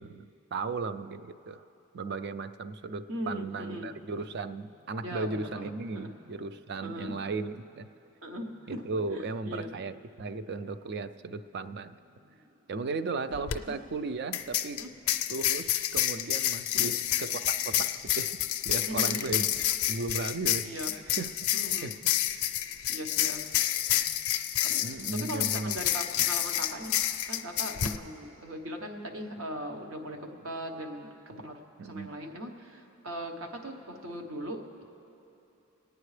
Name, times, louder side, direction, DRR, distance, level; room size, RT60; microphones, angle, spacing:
voice 1, 0.0-1.6 1.9-7.9 8.7-11.9 12.7-14.8 15.3-17.3 17.7-18.4 18.7-19.5 19.9-21.3 21.8-21.9 24.8-25.8 31.8-32.1, right 3 dB, 50° right, 12 dB, 0.4 m, -36 dB
voice 2, 3.1-4.0 5.0-6.1 6.8-7.2 8.2-8.8 9.1-9.7 13.7-13.8 14.8-14.9 16.7-16.9 18.8-19.3 20.6-20.9 21.5-21.9 22.9-23.4 23.9-24.0 24.6-24.8 25.1-26.9 27.3-31.6 31.9-32.5 33.0-34.8, equal, 65° right, 3 dB, 1.1 m, -39 dB
sound 1, 13.3-13.6 14.3-28.0, left 12 dB, 85° left, 0.5 m, -29 dB
26.5 x 9.3 x 3.3 m, 2.9 s
head